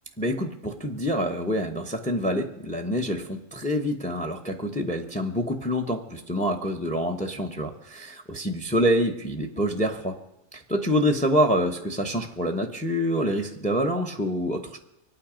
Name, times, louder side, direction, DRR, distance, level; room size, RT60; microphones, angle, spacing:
voice 1, 0.2-10.2 10.5-14.8, equal, 5° left, 6 dB, 1.0 m, -26 dB
24.5 x 9.0 x 5.1 m, 0.87 s
omnidirectional pair, 1.2 m